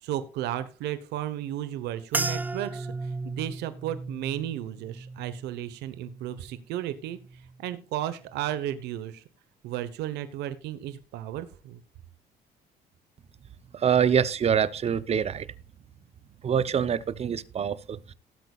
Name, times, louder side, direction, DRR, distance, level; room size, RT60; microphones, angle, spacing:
voice 1, 0.0-9.2 9.6-11.8, right 12 dB, 85° right, 1.1 m, -34 dB
sound 1, 2.1-6.7 7.0-7.6 8.2-8.5, right 3 dB, 10° right, 0.4 m, -36 dB
voice 2, 13.7-15.5 16.4-18.1, right 8 dB, 40° right, 0.8 m, -25 dB
18.0 x 8.2 x 2.4 m
cardioid pair, 110°, 17 cm